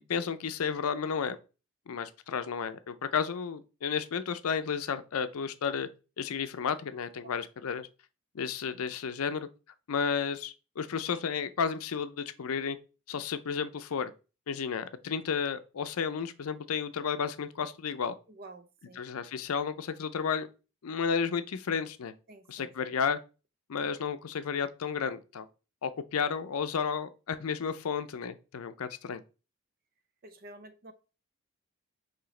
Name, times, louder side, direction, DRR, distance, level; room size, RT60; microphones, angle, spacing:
voice 1, 0.1-1.4 1.9-5.9 6.2-7.9 8.3-9.5 9.9-12.8 13.1-14.1 14.5-18.1 18.9-20.5 20.8-22.1 22.5-23.2 23.7-25.5 25.8-29.2, left 6 dB, 85° left, 0.5 m, -32 dB
voice 2, 18.3-19.0 22.3-22.7 30.2-30.9, right 2 dB, 40° right, 0.5 m, -50 dB
4.8 x 3.2 x 3.2 m
head